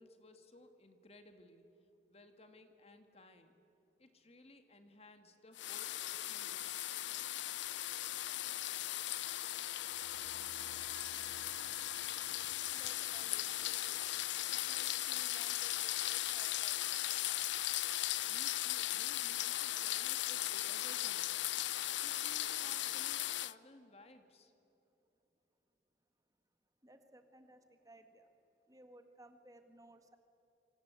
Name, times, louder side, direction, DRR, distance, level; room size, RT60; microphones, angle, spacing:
voice 1, 0.0-1.6 2.1-3.6 4.0-6.9 18.3-21.6 22.0-24.5, left 2 dB, 35° left, 7 dB, 1.9 m, -59 dB
sound 1, 5.6-23.5, left 14 dB, 85° left, 0.6 m, -37 dB
sound 2, 9.9-20.1 20.4-20.5, right 5 dB, 85° right, 0.8 m, -62 dB
voice 2, 12.7-14.1 14.5-17.0 26.8-28.3 28.7-30.2, right 1 dB, 20° right, 7 dB, 1.8 m, -60 dB
27.5 x 25.5 x 8.3 m, 2.9 s
head